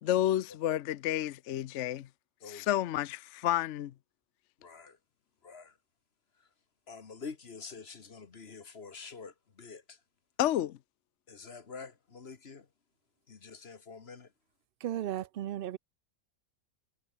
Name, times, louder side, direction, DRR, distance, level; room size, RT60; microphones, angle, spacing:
voice 1, 0.0-2.1 2.5-3.9 10.4-10.8, left 12 dB, 65° left, 0.9 m, -30 dB
voice 2, 4.6-5.0 5.4-5.8 6.4-6.5 6.9-10.0 11.3-12.7 13.3-14.3, left 5 dB, 45° left, 1.6 m, -47 dB
voice 3, 14.8-15.8, right 12 dB, 85° right, 0.4 m, -35 dB
omnidirectional pair, 1.5 m